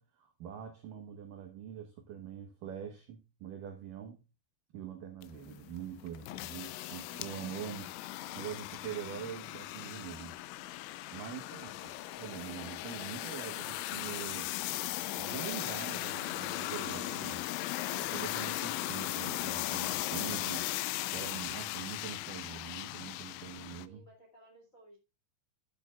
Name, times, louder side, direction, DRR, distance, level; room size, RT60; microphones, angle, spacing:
voice 1, 0.0-4.2 4.7-8.0 8.3-10.4 11.1-11.7 12.2-14.5 15.2-17.4 17.9-20.7 21.1-24.0, right 9 dB, 75° right, 2.0 m, -44 dB
sound 1, 5.2-23.9, left 16 dB, 85° left, 3.0 m, -38 dB
voice 2, 11.4-12.1 23.8-25.0, right 1 dB, 35° left, 1.3 m, -58 dB
12.0 x 8.3 x 2.4 m
omnidirectional pair, 5.4 m